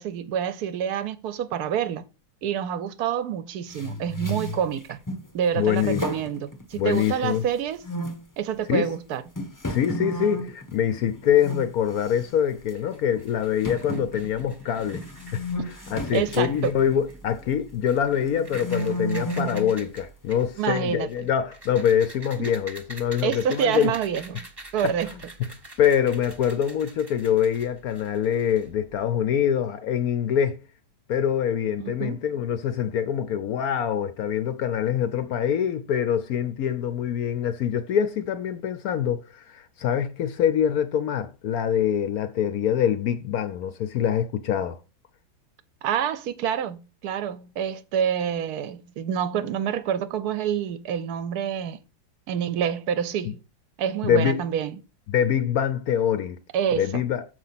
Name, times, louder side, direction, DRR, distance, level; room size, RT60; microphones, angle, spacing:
voice 1, 0.0-2.0 2.4-5.0 5.3-7.8 8.4-9.2 16.1-16.7 20.6-21.1 23.2-24.5 24.7-25.1 31.8-32.2 45.8-51.8 52.3-53.4 53.8-54.8 56.5-56.9, right 8 dB, 65° right, 1.0 m, -27 dB
sound 1, 3.7-5.3 5.7-7.5 7.8-8.2 8.8-8.9 9.3-11.7 12.0-12.3 12.7-12.8 13.6-17.6 18.1-19.8, equal, 30° left, 0.3 m, -33 dB
voice 2, 5.6-6.0 6.8-7.4 8.7-8.9 9.7-15.0 15.3-15.4 15.9-23.9 24.8-25.5 25.8-30.6 31.1-44.8 53.2-53.3 54.0-54.4 55.1-56.4 56.7-57.2, left 9 dB, 70° left, 0.8 m, -24 dB
sound 2, 12.7-29.0, right 2 dB, 15° right, 0.9 m, -46 dB
7.2 x 4.7 x 5.7 m
omnidirectional pair, 2.2 m